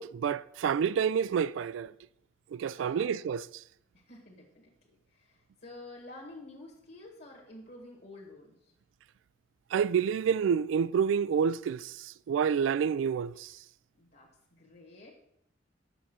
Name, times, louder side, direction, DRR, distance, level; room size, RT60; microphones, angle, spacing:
voice 1, 0.0-1.9 2.5-3.6 9.7-13.5, right 7 dB, 80° right, 0.3 m, -28 dB
voice 2, 2.7-3.1 3.9-4.7 5.1-8.5 14.0-15.1, left 2 dB, 55° left, 1.5 m, -50 dB
7.1 x 5.5 x 6.0 m
head